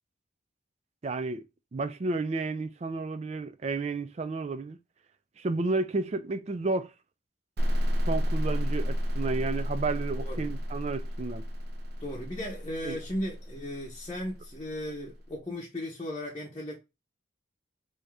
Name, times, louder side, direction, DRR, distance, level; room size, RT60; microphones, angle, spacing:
voice 1, 1.0-1.4 1.7-4.8 5.4-6.9 8.1-11.5 12.8-13.0, right 3 dB, 35° right, 0.3 m, -31 dB
sound 1, 7.6-15.1, equal, 55° right, 0.7 m, -31 dB
voice 2, 12.0-16.8, left 1 dB, 25° left, 0.7 m, -36 dB
3.5 x 2.7 x 3.3 m
head